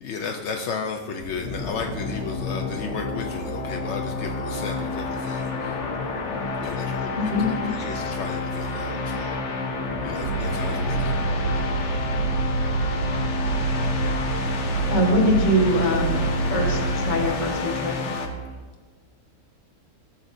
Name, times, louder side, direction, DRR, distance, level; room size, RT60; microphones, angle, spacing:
voice 1, 0.0-6.2 6.6-7.1 7.4-9.6 10.0-11.3 18.4-18.6, left 5 dB, 70° left, 3 dB, 0.6 m, -34 dB
sound 1, 1.2-18.3, left 3 dB, 50° left, 1.0 m, -29 dB
voice 2, 7.2-8.1 14.9-16.2 16.5-18.0, equal, 30° left, 0 dB, 1.2 m, -23 dB
sound 2, 10.2-17.3, right 4 dB, 70° right, 2.1 m, -26 dB
13.5 x 7.1 x 2.6 m, 1.4 s
omnidirectional pair, 1.8 m